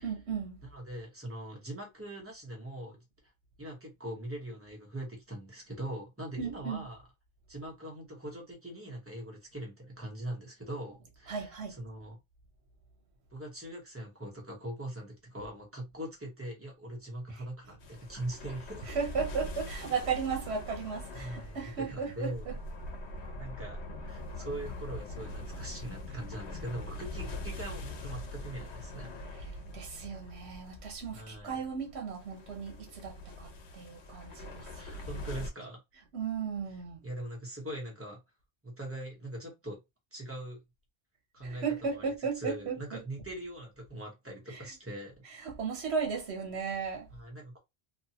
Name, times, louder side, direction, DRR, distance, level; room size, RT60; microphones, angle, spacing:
voice 1, 0.0-0.6 6.4-6.9 11.3-11.8 18.9-22.5 29.7-34.7 36.1-37.0 41.4-43.0 45.4-47.1, right 6 dB, 75° right, 1.2 m, -35 dB
voice 2, 0.6-3.0 3.6-7.0 7.5-12.2 13.3-19.0 21.2-22.5 23.4-29.1 31.1-31.6 34.6-35.8 37.0-38.2 38.6-39.8 40.1-40.6 41.3-45.1 47.1-47.6, right 1 dB, 15° right, 1.0 m, -42 dB
sound 1, 17.8-35.5, left 1 dB, 85° left, 1.0 m, -43 dB
2.7 x 2.3 x 2.8 m
omnidirectional pair, 1.1 m